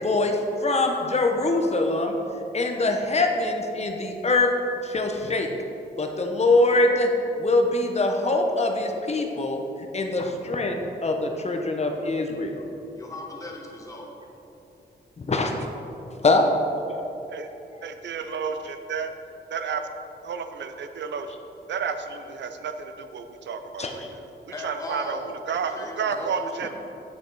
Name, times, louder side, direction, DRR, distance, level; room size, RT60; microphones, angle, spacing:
voice 1, 0.0-2.2 2.5-4.5 4.8-5.5 6.0-7.1 7.4-9.6 9.9-12.6 15.2-15.5 16.2-16.5 23.8-24.1, left 2 dB, 35° left, 3 dB, 0.9 m, -23 dB
voice 2, 12.9-14.1 24.5-26.7, left 1 dB, 20° left, -1 dB, 1.3 m, -38 dB
voice 3, 17.8-19.1 19.5-19.8 20.2-21.3 21.7-24.0 24.6-25.2 25.5-26.7, right 6 dB, 80° right, 8 dB, 0.6 m, -31 dB
8.3 x 6.7 x 4.7 m, 2.9 s
wide cardioid pair, 120°, 18 cm